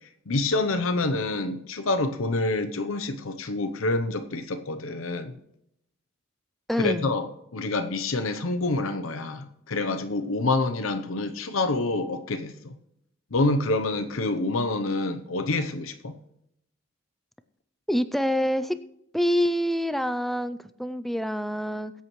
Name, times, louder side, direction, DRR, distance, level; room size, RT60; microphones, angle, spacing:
voice 1, 0.3-5.3 6.7-12.7 13.3-16.2, left 2 dB, 80° left, 8 dB, 0.8 m, -27 dB
voice 2, 6.7-7.1 17.9-18.8 19.1-21.9, equal, ahead, 12 dB, 0.4 m, -26 dB
22.0 x 8.3 x 3.1 m, 0.77 s
head